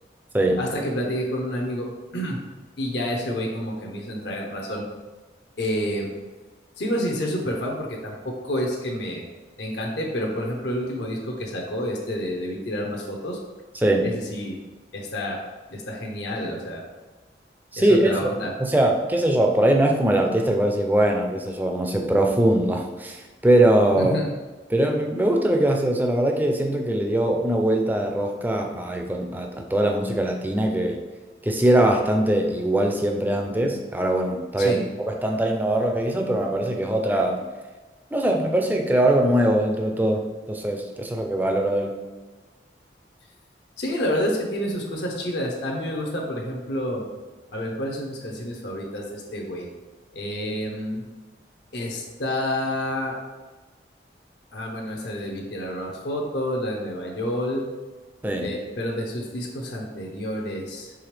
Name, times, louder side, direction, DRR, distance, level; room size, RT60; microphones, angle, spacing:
voice 1, 0.6-1.9 2.1-2.4 2.8-4.8 5.6-6.1 6.8-9.2 9.6-13.4 14.0-14.6 14.9-15.4 15.7-16.8 17.8-18.5 24.0-24.3 34.6-34.8 43.8-47.0 47.5-49.7 50.1-51.0 51.7-53.2 54.5-57.6 58.4-60.9, equal, 75° left, 0 dB, 0.7 m, -29 dB
voice 2, 13.7-14.1 17.7-18.3 18.6-24.2 24.7-31.0 31.4-34.8 35.0-37.4 38.1-41.9 58.2-58.5, right 1 dB, 10° right, 2 dB, 0.4 m, -21 dB
4.8 x 3.3 x 3.2 m, 1.3 s
head